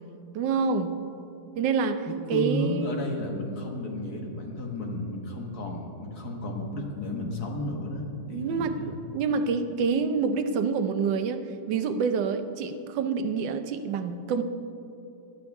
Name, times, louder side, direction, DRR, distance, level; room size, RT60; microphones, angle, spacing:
voice 1, 0.3-1.0 1.6-3.0 8.3-14.4, right 5 dB, 85° right, 9 dB, 1.4 m, -27 dB
voice 2, 2.1-9.0, left 1 dB, 60° left, 1 dB, 1.9 m, -33 dB
17.5 x 11.5 x 3.5 m, 2.8 s
omnidirectional pair, 1.9 m